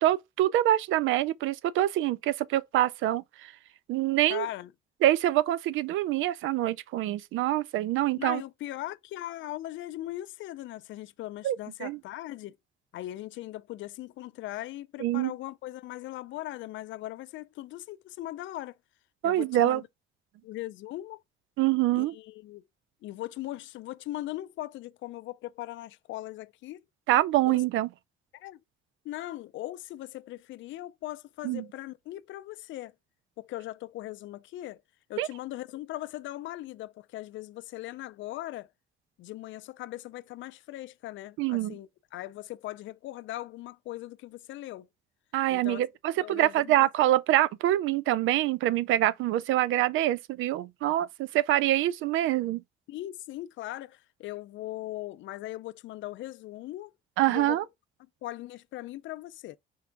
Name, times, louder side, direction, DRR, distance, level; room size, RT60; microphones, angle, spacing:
voice 1, 0.0-3.2 3.9-4.5 5.0-8.4 11.4-11.6 11.8-12.0 15.0-15.3 19.2-19.8 21.6-22.1 27.1-27.9 31.4-31.6 35.2-35.3 41.4-41.7 45.3-52.6 57.2-57.6, right 14 dB, 85° right, 0.4 m, -25 dB
voice 2, 4.3-4.7 8.2-12.6 12.9-18.8 19.2-19.8 20.4-21.2 21.9-22.6 23.0-26.8 27.4-27.6 28.3-28.6 29.0-32.9 33.4-34.8 35.1-38.7 39.2-44.9 45.5-45.8 46.2-46.9 52.9-56.9 57.3-57.6 58.2-59.6, left 15 dB, 75° left, 0.4 m, -39 dB
4.7 x 3.4 x 3.3 m
cardioid pair, 90°, 20 cm